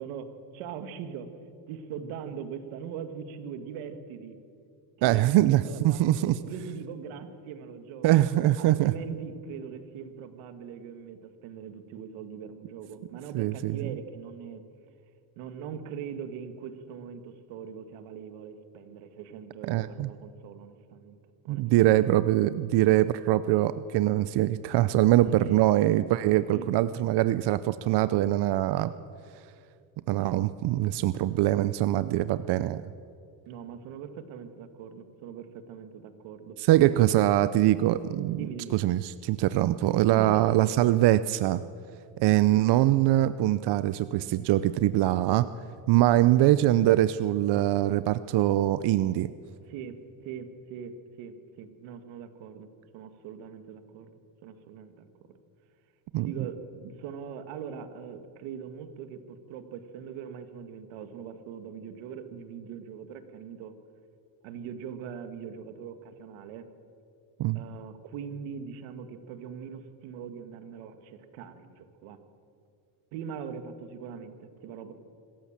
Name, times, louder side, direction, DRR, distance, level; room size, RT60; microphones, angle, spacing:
voice 1, 0.0-1.3 1.7-4.4 5.0-8.2 8.6-14.6 15.4-21.2 21.4-22.4 25.1-25.6 26.5-26.7 33.5-36.6 37.1-37.2 38.3-38.8 40.1-40.6 49.6-50.0 50.2-52.7 52.9-54.1 54.4-55.1 56.2-63.7 64.4-66.7 67.5-72.2 73.1-74.9, right 7 dB, 85° right, 9 dB, 1.9 m, -41 dB
voice 2, 5.0-6.4 8.0-8.9 13.3-13.8 19.6-20.1 21.5-28.9 30.1-32.8 36.6-38.5 38.7-41.6 42.2-45.5 45.9-49.3 56.1-56.3 67.4-67.6, right 14 dB, 60° right, 14 dB, 0.6 m, -23 dB
25.5 x 14.0 x 7.3 m, 2.4 s
cardioid pair, 120°, 47 cm